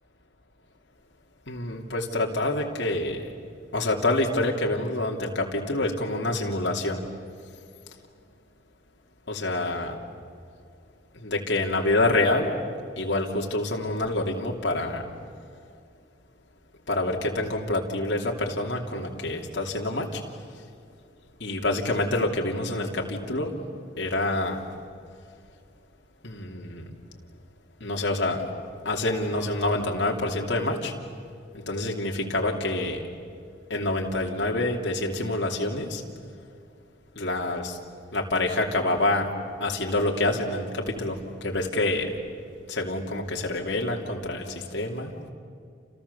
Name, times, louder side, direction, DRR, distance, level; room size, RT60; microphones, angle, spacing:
voice 1, 1.5-3.2 3.7-7.0 9.3-10.0 11.1-12.6 13.0-15.0 16.9-20.2 21.4-23.5 24.0-24.6 26.2-26.9 27.8-28.4 28.8-30.9 31.5-33.0 33.7-36.0 37.2-37.8 38.1-39.3 39.6-42.1 42.7-45.1, left 2 dB, 65° left, -1 dB, 2.8 m, -27 dB
29.5 x 29.0 x 7.0 m, 2.3 s
head